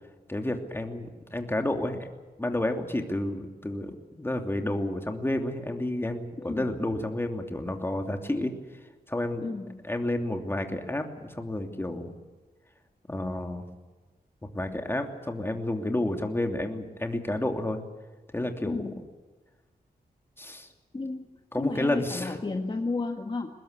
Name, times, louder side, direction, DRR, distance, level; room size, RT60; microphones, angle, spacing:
voice 1, 0.3-2.1 2.4-3.9 4.2-8.5 9.1-9.4 9.8-12.1 13.1-13.6 14.5-17.8 18.3-18.9 20.4-20.7 21.5-22.4, left 1 dB, 15° left, 4 dB, 2.9 m, -30 dB
voice 2, 6.4-6.7 9.4-9.9 18.6-19.0 20.9-21.3 21.6-23.6, left 3 dB, 30° left, 3 dB, 1.7 m, -32 dB
23.5 x 20.5 x 8.4 m, 1.3 s
wide cardioid pair, 125°, 16 cm